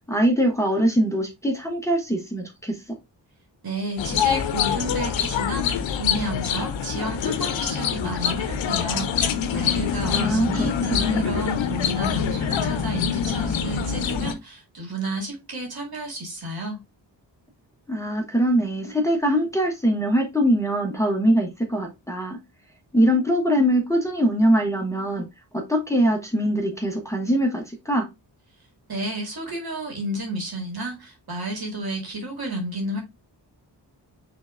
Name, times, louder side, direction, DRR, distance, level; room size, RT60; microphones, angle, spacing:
voice 1, 0.1-2.8 10.0-11.4 17.9-22.4 22.9-25.3 25.5-28.1, equal, 5° left, 1.0 m, -22 dB
voice 2, 3.6-16.8 28.9-33.0, right 1 dB, 55° right, 2.1 m, -32 dB
sound 1, 4.0-14.3, left 7 dB, 90° left, 0.6 m, -25 dB
6.0 x 3.3 x 2.5 m
cardioid pair, 60°, 44 cm